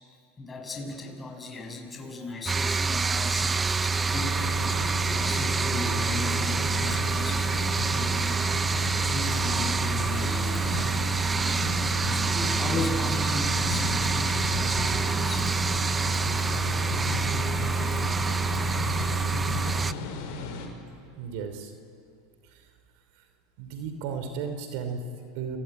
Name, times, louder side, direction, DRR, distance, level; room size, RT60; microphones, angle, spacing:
voice 1, 0.4-4.5 5.1-8.5 9.1-10.7 12.0-15.5 16.4-16.6 17.9-18.0, left 2 dB, 20° left, 1 dB, 6.9 m, -37 dB
sound 1, 2.5-19.9, right 4 dB, 20° right, 0.7 m, -27 dB
sound 2, 4.1-20.7, left 4 dB, 65° left, 5.8 m, -35 dB
voice 2, 21.1-21.7 22.4-22.7 23.1-23.2 23.6-25.6, right 6 dB, 65° right, 8 dB, 3.0 m, -35 dB
29.5 x 21.0 x 9.1 m, 2.4 s
hypercardioid pair, 105°, 0 cm